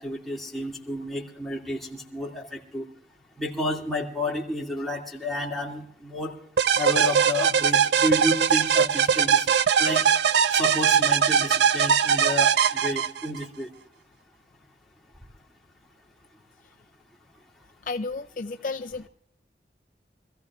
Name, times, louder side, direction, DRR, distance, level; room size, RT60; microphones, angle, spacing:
voice 1, 0.0-2.9 3.4-6.3 6.8-9.5 9.8-10.0 10.5-13.7, left 1 dB, ahead, -4 dB, 2.3 m, -31 dB
sound 1, 6.6-13.4, right 7 dB, 80° right, 0.4 m, -21 dB
voice 2, 17.8-19.1, left 3 dB, 45° left, 6 dB, 0.5 m, -32 dB
25.5 x 15.0 x 2.4 m, 0.63 s
head